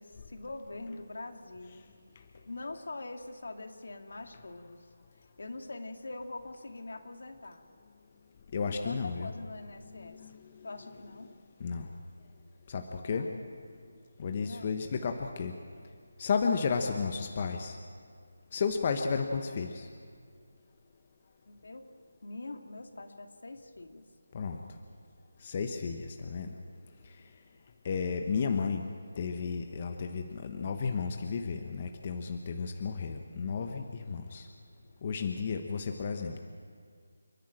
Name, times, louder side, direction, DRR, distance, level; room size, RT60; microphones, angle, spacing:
voice 1, 0.0-1.9 2.4-7.6 8.7-10.3 10.6-11.3 13.1-13.8 14.4-14.8 21.5-21.9 22.2-24.1, left 2 dB, 70° left, 5 dB, 2.2 m, -44 dB
voice 2, 8.5-9.3 9.9-10.7 11.6-11.9 12.7-13.3 14.2-15.5 16.2-17.8 18.5-19.9 24.3-24.6 25.4-26.5 27.8-28.8 29.2-34.5 35.0-36.4, left 5 dB, 30° left, 5 dB, 1.1 m, -33 dB
29.5 x 10.0 x 8.9 m, 2.1 s
figure-of-eight pair, 170°, 0 cm